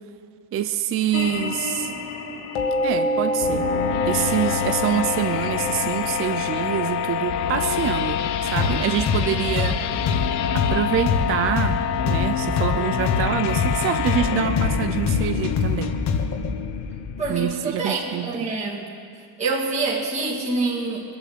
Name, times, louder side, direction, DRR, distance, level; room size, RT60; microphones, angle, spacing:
voice 1, 0.5-1.9 2.8-3.7 4.1-9.8 10.5-15.9 17.3-18.5, right 10 dB, 30° right, 8 dB, 0.4 m, -26 dB
sound 1, 1.1-8.0, left 1 dB, 75° left, 2.1 m, -28 dB
sound 2, 3.4-17.3, left 9 dB, 55° left, 0.9 m, -26 dB
sound 3, 8.6-16.5, left 5 dB, 35° left, 1.2 m, -24 dB
voice 2, 17.2-18.9 19.4-21.0, right 3 dB, 15° right, -5 dB, 2.0 m, -26 dB
22.0 x 8.5 x 7.5 m, 2.3 s
cardioid pair, 165°, 47 cm